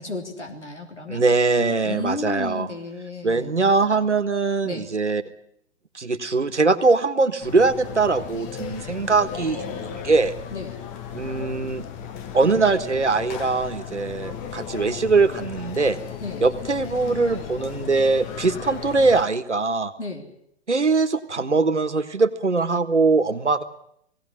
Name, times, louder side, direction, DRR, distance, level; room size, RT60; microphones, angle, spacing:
voice 1, 0.0-1.2 1.8-3.5 4.6-4.9 10.5-10.8 16.2-16.4 20.0-20.3, left 3 dB, 90° left, 1 dB, 3.4 m, -33 dB
voice 2, 1.1-2.7 3.2-5.2 5.9-10.3 11.1-11.8 12.3-16.0 16.4-19.9 20.7-23.6, right 3 dB, 85° right, 9 dB, 1.6 m, -21 dB
sound 1, 7.4-19.3, left 8 dB, 25° left, 1.2 m, -35 dB
19.5 x 17.0 x 9.6 m, 0.72 s
figure-of-eight pair, 120°, 34 cm